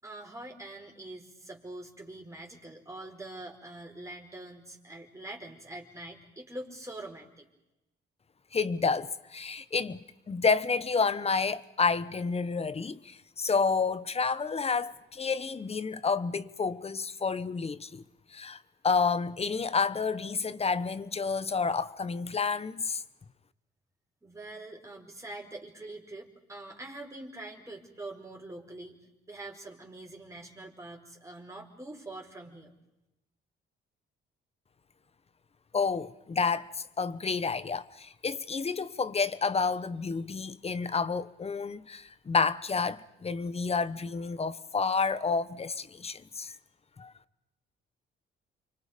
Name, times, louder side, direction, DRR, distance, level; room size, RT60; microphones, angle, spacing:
voice 1, 0.0-7.5 24.2-32.7, right 2 dB, 15° right, 5.0 m, -44 dB
voice 2, 8.5-18.0 18.3-18.6 18.8-23.0 35.7-46.5 47.0-47.1, left 5 dB, 30° left, 1.1 m, -30 dB
29.5 x 24.5 x 5.2 m
cardioid pair, 90°, 20 cm